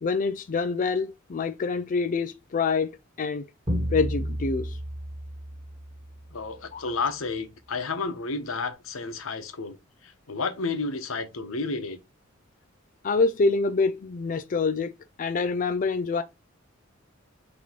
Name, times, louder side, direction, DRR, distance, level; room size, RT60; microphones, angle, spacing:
voice 1, 0.0-2.9 3.2-3.5 3.9-4.8 6.7-6.8 13.0-14.9 15.2-16.2, left 4 dB, 40° left, 0.4 m, -26 dB
sound 1, 3.7-6.4, equal, 30° right, 1.3 m, -32 dB
voice 2, 6.3-9.8 10.0-12.0, left 4 dB, 90° left, 0.9 m, -31 dB
4.1 x 3.0 x 4.3 m
head